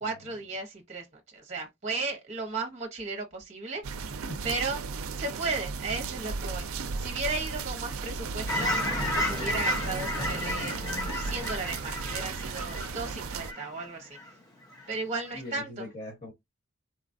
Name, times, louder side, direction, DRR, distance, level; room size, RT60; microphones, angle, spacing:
voice 1, 0.0-3.8 4.4-4.8 5.1-8.7 9.1-10.8 11.1-14.2 14.9-15.9, right 3 dB, 30° right, 0.8 m, -35 dB
sound 1, 3.8-13.5, right 4 dB, 70° right, 0.4 m, -35 dB
Fowl / Chirp tweet, 8.5-14.3 14.7-14.9, left 1 dB, 15° left, 0.8 m, -32 dB
voice 2, 15.3-16.3, left 1 dB, 40° left, 1.6 m, -41 dB
3.8 x 2.3 x 2.5 m
head